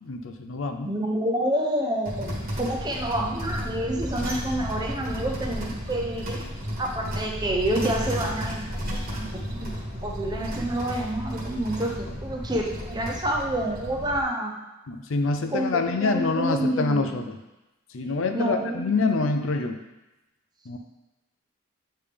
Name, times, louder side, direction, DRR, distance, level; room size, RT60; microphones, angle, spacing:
voice 1, 0.0-0.9 7.0-7.1 14.9-17.4 17.9-19.8 20.7-20.8, left 3 dB, 70° left, 6 dB, 0.5 m, -26 dB
voice 2, 0.8-6.4 6.8-9.7 10.0-14.6 15.5-17.2 18.3-19.3, right 1 dB, 20° right, 0 dB, 0.7 m, -28 dB
sound 1, 2.0-14.2, equal, 45° right, 1.4 m, -33 dB
8.6 x 3.4 x 3.4 m, 1.0 s
head